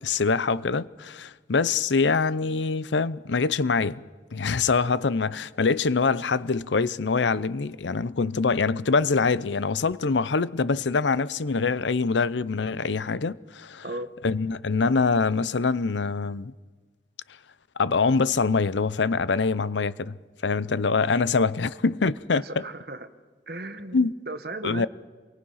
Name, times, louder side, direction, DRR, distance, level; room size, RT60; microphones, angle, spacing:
voice 1, 0.0-4.0 4.3-13.8 14.2-16.5 17.8-20.1 20.4-22.4 23.9-24.1 24.6-24.9, left 4 dB, 85° left, 0.7 m, -24 dB
voice 2, 22.3-23.1 23.5-24.9, right 2 dB, 55° right, 1.3 m, -36 dB
27.5 x 23.5 x 5.7 m
head